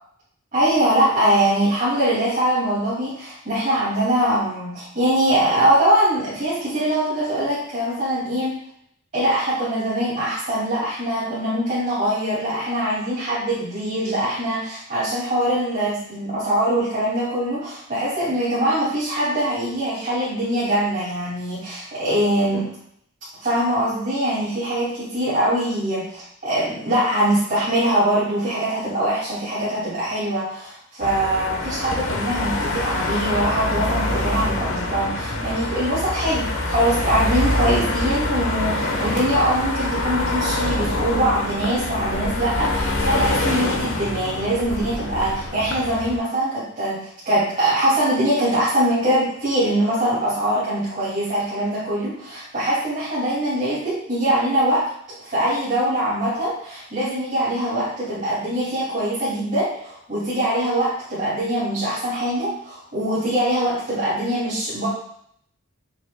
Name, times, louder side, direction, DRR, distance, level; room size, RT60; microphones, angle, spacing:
voice 1, 0.5-8.5 9.1-22.7 23.3-54.9 55.2-64.9, right 1 dB, 40° right, -10 dB, 2.6 m, -22 dB
sound 1, 31.0-46.2, left 2 dB, 65° left, 1.2 m, -25 dB
7.0 x 6.2 x 2.3 m, 0.68 s
head